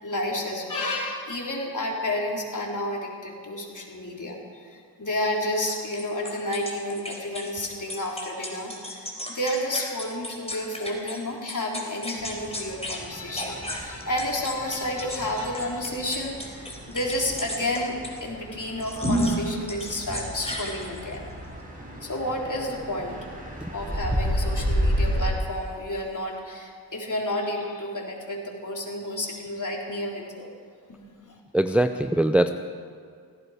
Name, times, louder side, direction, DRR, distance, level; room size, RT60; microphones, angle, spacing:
voice 1, 0.0-21.2 22.0-23.2 23.7-30.5 30.9-31.4, left 1 dB, 45° left, -1 dB, 3.9 m, -31 dB
sound 1, 5.7-11.2 11.5-13.0 13.3-18.2 18.8-19.4 19.7-21.2, left 1 dB, 15° left, 4.0 m, -36 dB
sound 2, 12.2-25.3, equal, 20° right, 5.5 m, -31 dB
voice 2, 31.5-32.5, right 1 dB, 5° right, 8 dB, 0.6 m, -21 dB
17.0 x 16.0 x 5.1 m, 2.1 s
cardioid pair, 50°, 43 cm